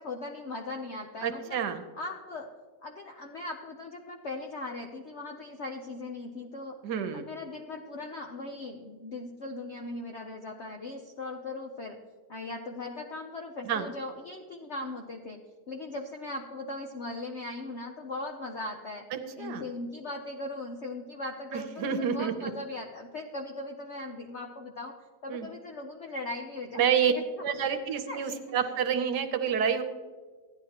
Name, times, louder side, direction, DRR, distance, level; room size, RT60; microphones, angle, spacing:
voice 1, 0.0-1.6 1.9-2.5 2.8-6.8 7.1-12.0 12.3-15.4 15.7-19.1 19.4-24.9 25.2-27.2 27.6-27.7 28.1-28.4, left 2 dB, 60° left, 2 dB, 0.7 m, -39 dB
voice 2, 1.2-1.8 6.8-7.2 13.7-13.8 19.1-19.6 21.5-22.5 25.3-25.5 26.8-27.1 27.4-29.8, right 7 dB, 70° right, 7 dB, 1.3 m, -28 dB
15.5 x 10.5 x 2.9 m, 1.5 s
omnidirectional pair, 2.0 m